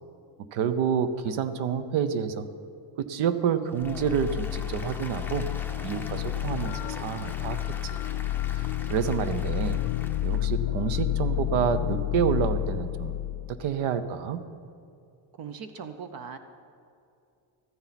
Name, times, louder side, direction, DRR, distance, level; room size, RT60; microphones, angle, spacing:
voice 1, 0.5-2.5 3.0-5.5 5.8-8.0 8.5-9.8 10.2-13.1 13.5-14.4, right 8 dB, 85° right, 12 dB, 0.9 m, -28 dB
Applause, 3.7-10.4, left 2 dB, 5° left, 0.7 m, -44 dB
sound 1, 3.8-13.6, left 13 dB, 65° left, 0.5 m, -30 dB
voice 2, 15.3-16.4, right 6 dB, 50° right, 9 dB, 0.7 m, -39 dB
14.5 x 14.0 x 4.1 m, 2.5 s
cardioid pair, 150°, 48 cm